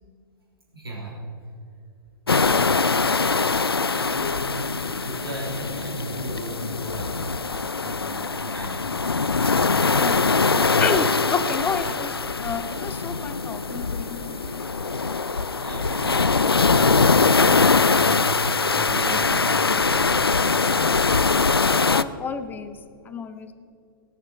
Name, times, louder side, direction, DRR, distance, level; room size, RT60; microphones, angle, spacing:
voice 1, 0.7-1.2 3.8-7.3 7.7-9.4 10.1-10.8 11.8-11.9 14.3-14.6 15.5-20.6, right 1 dB, 85° right, -3 dB, 3.3 m, -36 dB
sound 1, 2.3-22.0, left 4 dB, 90° left, 0.4 m, -22 dB
voice 2, 9.9-10.2 10.8-14.5 21.9-22.8 23.1-23.5, left 5 dB, 15° left, 11 dB, 0.7 m, -30 dB
sound 2, 14.0-19.4, left 2 dB, 40° left, 3.6 m, -44 dB
18.5 x 7.0 x 5.5 m, 2.4 s
figure-of-eight pair, 115°, 12 cm